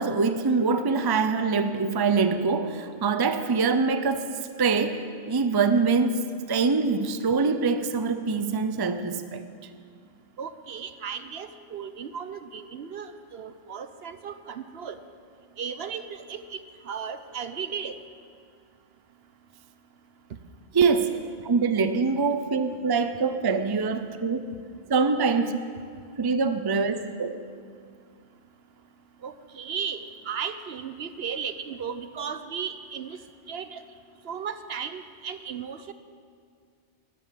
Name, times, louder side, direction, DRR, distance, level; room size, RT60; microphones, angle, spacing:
voice 1, 0.0-4.3 4.6-9.4 20.7-21.1 21.4-24.5 24.9-25.6 26.2-27.3, right 4 dB, 25° right, 0.5 m, -24 dB
voice 2, 10.4-15.0 15.6-16.6 16.9-18.0 29.2-30.0 30.3-33.2 33.5-33.8 34.2-35.9, right 7 dB, 65° right, 0.9 m, -35 dB
13.5 x 11.5 x 7.6 m
omnidirectional pair, 1.2 m